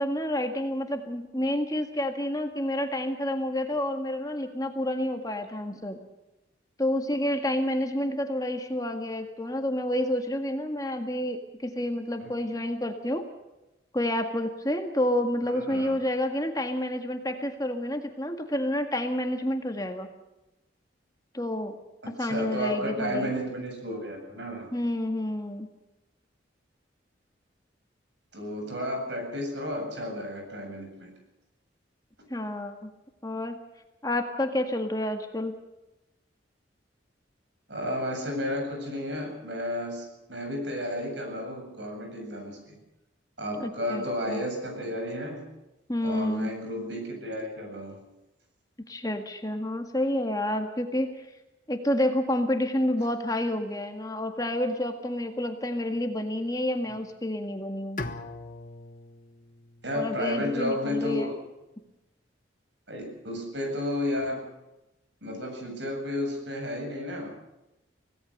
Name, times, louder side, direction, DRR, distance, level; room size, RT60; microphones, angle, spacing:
voice 1, 0.0-6.0 6.8-13.2 13.9-20.1 21.3-21.7 22.2-23.3 24.7-25.7 32.3-32.9 33.2-33.6 34.0-35.5 43.6-44.5 45.9-46.5 48.9-51.3 51.7-58.0 59.9-61.3, left 1 dB, 20° left, 5 dB, 1.8 m, -29 dB
voice 2, 15.5-16.0 22.0-24.7 28.3-31.1 37.7-42.8 43.4-45.4 46.0-48.0 59.8-61.3 62.9-64.4 65.2-67.3, left 1 dB, 70° right, 3 dB, 7.9 m, -32 dB
Bowed string instrument, 58.0-61.0, left 2 dB, 45° left, 1.4 m, -41 dB
25.5 x 17.5 x 6.6 m, 0.98 s
head